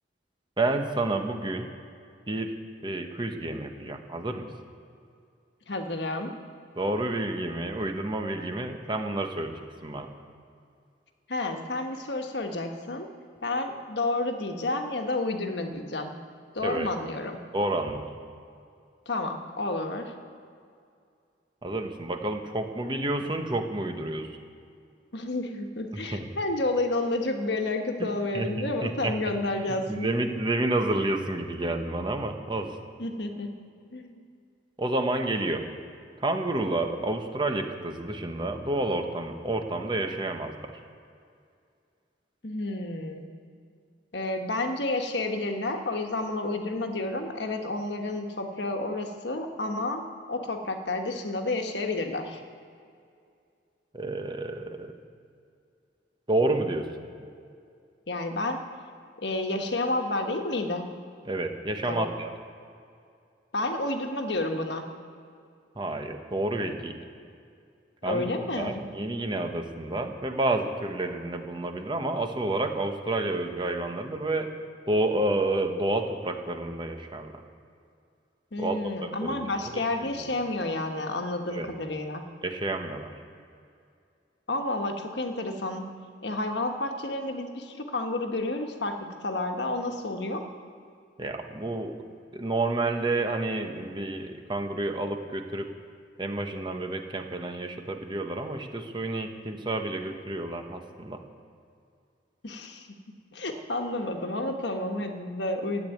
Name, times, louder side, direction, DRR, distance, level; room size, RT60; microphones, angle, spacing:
voice 1, 0.6-1.7 2.3-2.5 2.8-4.5 6.8-10.1 16.6-16.9 17.5-18.1 21.6-24.3 25.9-26.3 28.0-28.1 28.3-29.1 29.9-32.7 34.8-35.6 36.2-40.7 53.9-55.0 56.3-56.9 61.2-62.3 65.8-67.0 68.0-74.5 74.9-77.3 78.6-78.9 79.2-79.3 79.7-79.8 80.2-80.3 81.5-81.7 82.4-83.1 91.2-92.0 92.3-95.7 96.2-101.2, right 2 dB, 25° right, 5 dB, 1.1 m, -29 dB
voice 2, 5.7-6.3 11.3-13.1 13.4-16.1 16.5-17.4 19.1-20.1 25.1-30.1 33.0-33.6 33.9-34.2 42.4-43.2 44.1-50.0 50.3-52.4 58.1-58.6 59.2-60.9 61.8-62.1 63.5-64.9 68.0-68.9 78.5-82.2 84.5-85.9 86.2-90.4 102.4-102.9 103.3-105.9, left 2 dB, 70° left, 4 dB, 1.3 m, -30 dB
14.0 x 8.5 x 9.1 m, 2.4 s
head